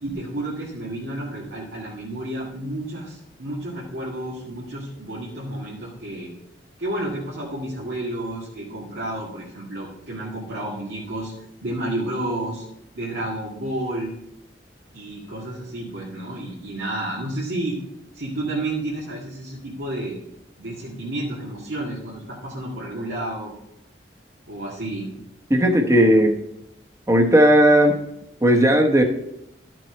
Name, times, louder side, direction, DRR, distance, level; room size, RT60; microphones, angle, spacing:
voice 1, 0.0-6.3 6.8-11.3 11.6-12.6 12.9-14.1 14.9-17.8 18.1-20.2 20.6-23.5 24.5-25.1, right 1 dB, 85° right, -7 dB, 2.0 m, -31 dB
voice 2, 25.5-26.4 27.1-28.0 28.4-29.0, equal, 15° right, 3 dB, 1.0 m, -15 dB
12.5 x 6.1 x 4.4 m, 0.83 s
head